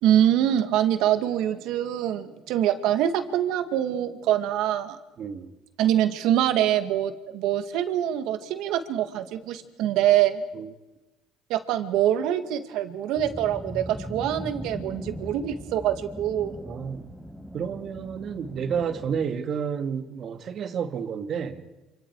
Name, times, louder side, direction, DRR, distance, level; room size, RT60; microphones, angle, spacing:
voice 1, 0.0-5.0 5.8-10.4 11.5-16.6, right 11 dB, 75° right, 2.1 m, -24 dB
voice 2, 5.2-5.5 10.5-10.7 14.1-14.3 16.6-17.1 17.5-21.6, right 7 dB, 55° right, 2.2 m, -31 dB
sound 1, 13.2-19.2, equal, 5° left, 4.5 m, -39 dB
28.5 x 27.0 x 4.9 m
supercardioid pair, 90°, 0 cm